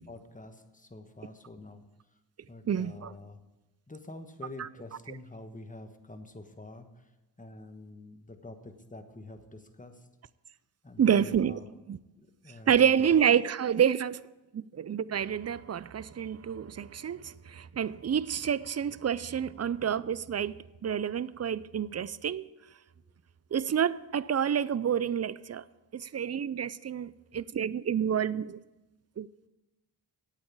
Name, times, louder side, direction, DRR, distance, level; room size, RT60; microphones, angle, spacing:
voice 1, 0.1-1.8 2.5-3.4 3.9-6.9 7.4-10.0 10.8-11.7 12.4-13.2, left 2 dB, 20° left, 1.4 m, -47 dB
voice 2, 2.7-3.1 4.6-4.7 5.1-5.2 11.0-11.6 11.9-12.0 12.7-14.2 14.5-22.5 23.5-25.6 25.9-28.6 29.2-29.3, right 8 dB, 35° right, 0.5 m, -28 dB
8.8 x 8.4 x 8.4 m
cardioid pair, 40°, 44 cm